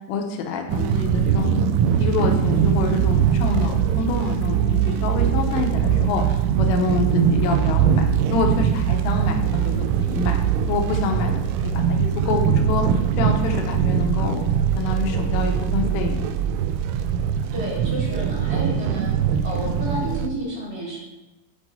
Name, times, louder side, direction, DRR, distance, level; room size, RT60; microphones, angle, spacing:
voice 1, 0.1-1.6 2.0-10.4 10.7-11.4 11.7-14.4 14.8-16.3, left 4 dB, 90° left, 3 dB, 3.3 m, -27 dB
sound 1, 0.7-20.3, right 8 dB, 90° right, 3.0 m, -21 dB
voice 2, 17.5-19.1 19.4-21.0, right 1 dB, 30° right, -8 dB, 3.0 m, -30 dB
8.6 x 5.4 x 4.0 m, 1.0 s
omnidirectional pair, 5.5 m